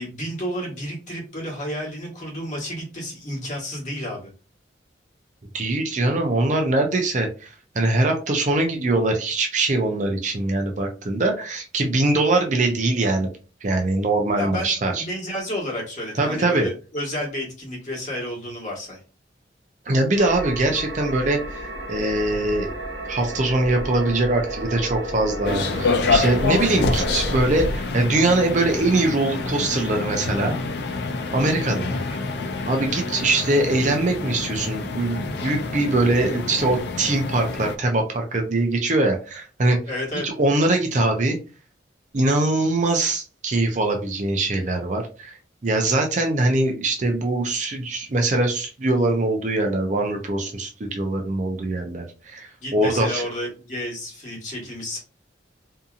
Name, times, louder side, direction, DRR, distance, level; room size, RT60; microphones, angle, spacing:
voice 1, 0.0-4.3 14.4-19.0 31.9-32.2 39.9-40.3 52.6-55.0, left 1 dB, 40° left, -4 dB, 1.3 m, -31 dB
voice 2, 5.5-7.5 7.7-13.3 13.6-15.0 16.2-16.7 19.9-21.6 21.9-22.7 23.1-30.6 31.3-31.9 32.7-39.8 40.2-41.4 42.1-53.2, right 2 dB, 40° right, 3 dB, 0.5 m, -22 dB
sound 1, 20.2-27.4, right 1 dB, 85° right, 0.9 m, -32 dB
sound 2, 25.4-37.7, left 3 dB, 60° left, 0.4 m, -27 dB
2.7 x 2.6 x 2.4 m, 0.35 s
head